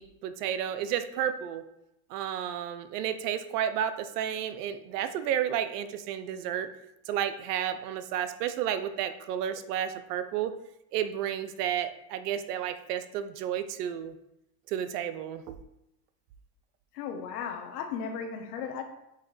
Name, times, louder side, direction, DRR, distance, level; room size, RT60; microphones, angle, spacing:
voice 1, 0.0-1.6 2.1-6.7 7.1-10.5 10.9-14.1 14.7-15.6, right 10 dB, 90° right, 10 dB, 0.7 m, -32 dB
voice 2, 16.9-18.8, left 6 dB, 85° left, 5 dB, 1.1 m, -35 dB
8.2 x 2.9 x 4.0 m, 0.85 s
supercardioid pair, 110°, 46 cm